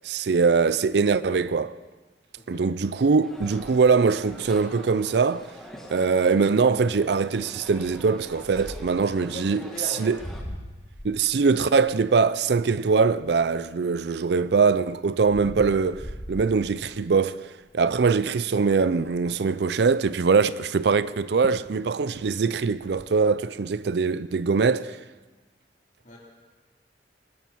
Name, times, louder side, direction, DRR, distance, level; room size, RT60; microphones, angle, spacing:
voice 1, 0.0-1.8 2.5-5.5 5.9-9.6 10.0-10.2 11.0-17.4 17.7-25.0, right 5 dB, 65° right, 0.4 m, -22 dB
sound 1, 3.2-10.4, equal, ahead, 1.7 m, -45 dB
sound 2, 3.4-4.9 5.4-5.5 5.7-6.0 6.5-6.8 7.7-9.1 9.8-13.7 14.2-17.2 17.7-18.0 18.2-18.3 18.6-19.3 21.0-21.1 21.4-21.8 22.1-23.1, equal, 20° left, 1.6 m, -42 dB
voice 2, 9.1-10.1 26.0-26.2, left 2 dB, 45° left, 4.1 m, -40 dB
21.0 x 12.5 x 4.6 m
head